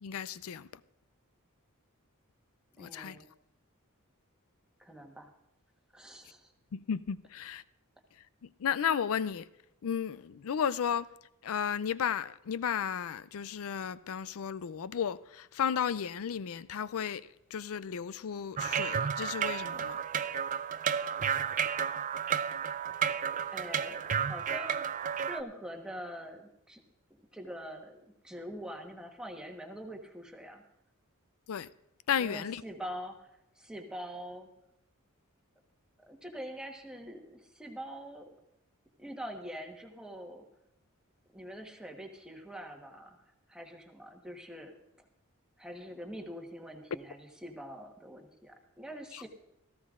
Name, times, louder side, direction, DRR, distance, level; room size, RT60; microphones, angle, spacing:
voice 1, 0.0-0.7 2.8-3.2 6.7-7.6 8.4-9.5 9.8-11.1 11.4-20.0 31.5-31.7 32.1-32.6 49.1-49.2, left 8 dB, 65° left, 0.4 m, -34 dB
voice 2, 2.8-3.2 4.8-5.3 5.9-6.5 23.5-26.8 27.3-30.6 32.2-34.5 36.1-38.3 39.0-40.5 41.3-43.2 43.5-44.7 45.6-49.3, equal, 5° right, 1.3 m, -44 dB
sound 1, 18.6-25.4, right 7 dB, 35° right, 0.4 m, -32 dB
17.5 x 14.5 x 2.5 m
head